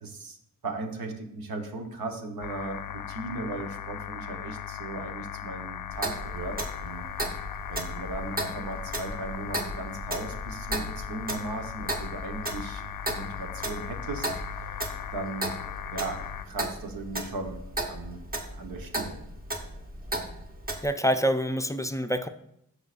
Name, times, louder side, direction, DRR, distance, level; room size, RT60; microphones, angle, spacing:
voice 1, 0.0-0.4 0.6-7.1 7.7-14.8 15.1-15.6 15.9-17.6 17.9-18.2 18.6-19.2, right 2 dB, 90° right, 4 dB, 1.1 m, -37 dB
sound 1, 2.4-16.5, left 10 dB, 70° left, 0.5 m, -38 dB
Clock, 5.9-20.8, right 1 dB, 25° right, 1.1 m, -36 dB
voice 2, 20.8-22.3, equal, 10° left, 8 dB, 0.4 m, -26 dB
13.0 x 4.8 x 2.5 m, 0.75 s
cardioid pair, 65°, 34 cm